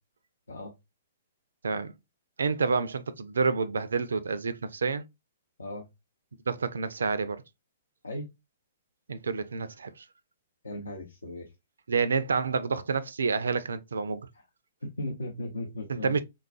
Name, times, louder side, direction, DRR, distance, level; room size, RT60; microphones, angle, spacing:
voice 1, 2.4-5.0 6.5-7.4 9.1-10.0 11.9-14.3 15.9-16.2, right 4 dB, 65° right, 0.3 m, -28 dB
voice 2, 10.6-11.5 14.8-16.2, left 1 dB, 75° left, 0.6 m, -37 dB
3.4 x 2.3 x 2.3 m
figure-of-eight pair, 115°, 0 cm